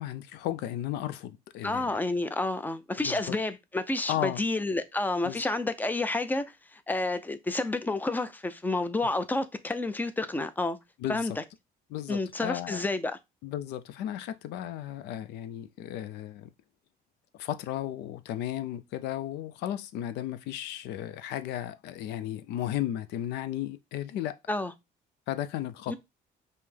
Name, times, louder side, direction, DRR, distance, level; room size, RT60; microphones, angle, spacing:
voice 1, 0.0-2.0 3.0-3.4 4.1-4.4 5.2-5.4 11.0-11.4 11.9-12.8 13.4-16.5 17.3-24.4 25.3-26.0, left 12 dB, 85° left, 0.5 m, -34 dB
voice 2, 1.6-6.4 6.7-10.8 11.1-11.4 12.1-13.2 24.5-24.7 25.9-26.0, left 2 dB, 10° left, 0.4 m, -30 dB
5.4 x 2.1 x 3.3 m
cardioid pair, 110°, 17 cm